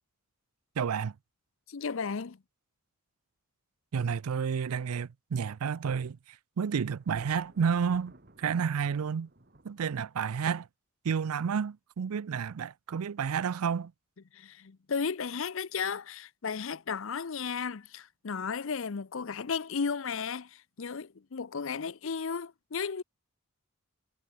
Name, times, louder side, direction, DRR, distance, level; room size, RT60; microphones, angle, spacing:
voice 1, 0.8-1.1 3.9-6.2 6.6-8.1 8.4-9.3 9.6-10.7 11.0-13.9, right 6 dB, 85° right, 0.4 m, -30 dB
voice 2, 1.7-2.4 14.3-23.0, left 5 dB, 65° left, 0.6 m, -34 dB
Thunder, 7.0-10.3, right 1 dB, 45° right, 2.0 m, -57 dB
head